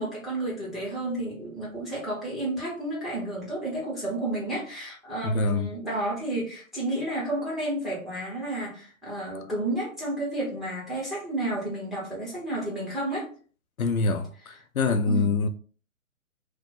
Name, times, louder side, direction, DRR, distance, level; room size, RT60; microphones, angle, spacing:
voice 1, 0.0-13.3 15.1-15.3, right 1 dB, ahead, 0.7 m, -31 dB
voice 2, 5.2-5.7 13.8-15.5, left 3 dB, 85° left, 0.6 m, -25 dB
3.0 x 2.1 x 3.7 m
figure-of-eight pair, 130°, 41 cm